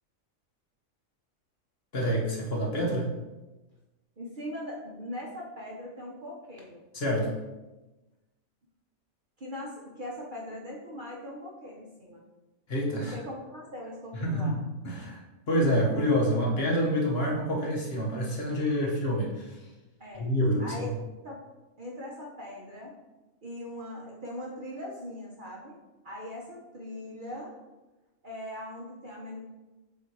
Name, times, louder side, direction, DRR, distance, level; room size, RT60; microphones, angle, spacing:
voice 1, 1.9-3.2 6.9-7.4 12.7-13.2 14.1-19.6 20.2-20.9, equal, 50° left, -2 dB, 1.2 m, -27 dB
voice 2, 4.2-6.8 9.4-12.2 13.0-14.5 20.0-20.3 20.6-20.9 21.2-21.4 21.8-22.9 23.4-25.7 26.0-27.5 28.2-29.4, left 1 dB, 40° right, -3 dB, 0.9 m, -40 dB
7.3 x 2.8 x 4.6 m, 1.1 s
omnidirectional pair, 1.4 m